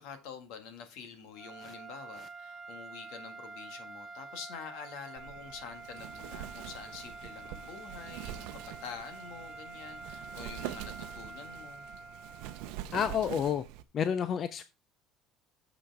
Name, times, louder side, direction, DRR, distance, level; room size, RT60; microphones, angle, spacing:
voice 1, 0.0-11.8, left 6 dB, 65° left, 1.7 m, -47 dB
sound 1, 1.3-12.9, right 3 dB, 15° right, 1.3 m, -47 dB
Wind, 5.2-13.8, right 13 dB, 75° right, 0.7 m, -44 dB
voice 2, 12.9-13.6 13.9-14.6, left 8 dB, 30° left, 0.4 m, -29 dB
7.0 x 5.7 x 4.7 m
cardioid pair, 175°, 0 cm